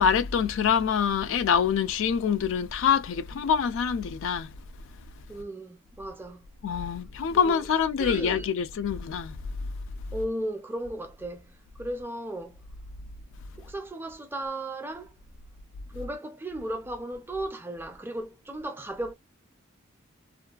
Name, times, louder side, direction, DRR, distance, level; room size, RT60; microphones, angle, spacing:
voice 1, 0.0-4.5 6.6-9.4, left 7 dB, 65° left, 0.3 m, -25 dB
voice 2, 5.3-6.4 7.3-7.6 8.0-8.5 10.1-11.5 11.8-12.5 13.6-15.1 15.9-19.1, right 1 dB, 10° right, 0.3 m, -35 dB
2.4 x 2.2 x 2.3 m
head